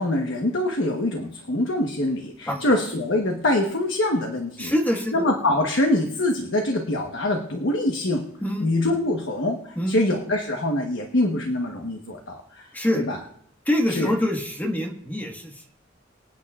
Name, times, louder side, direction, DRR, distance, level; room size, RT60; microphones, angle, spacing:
voice 1, 0.0-4.7 5.1-8.3 8.6-12.6 12.9-13.2 13.9-14.1, left 1 dB, 75° left, 2 dB, 1.2 m, -24 dB
voice 2, 4.6-5.2 8.4-8.7 9.7-10.0 12.7-13.0 13.6-15.7, left 1 dB, 10° left, 1 dB, 1.5 m, -25 dB
24.5 x 8.9 x 2.4 m, 0.70 s
head